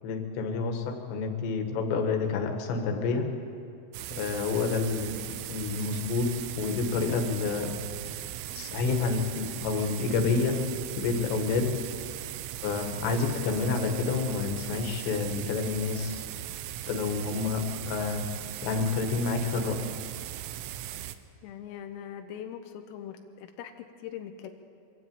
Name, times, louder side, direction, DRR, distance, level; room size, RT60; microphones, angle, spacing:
voice 1, 0.0-3.3 4.1-6.3 6.5-7.8 8.5-10.6 10.9-11.7 12.6-16.3 16.9-18.3 18.6-19.8, left 4 dB, 65° left, 3 dB, 3.7 m, -29 dB
sound 1, 3.9-21.2, right 13 dB, 80° right, 3.2 m, -38 dB
voice 2, 21.4-24.5, left 9 dB, 85° left, 5 dB, 3.6 m, -41 dB
24.5 x 12.5 x 8.9 m, 2.7 s
omnidirectional pair, 5.9 m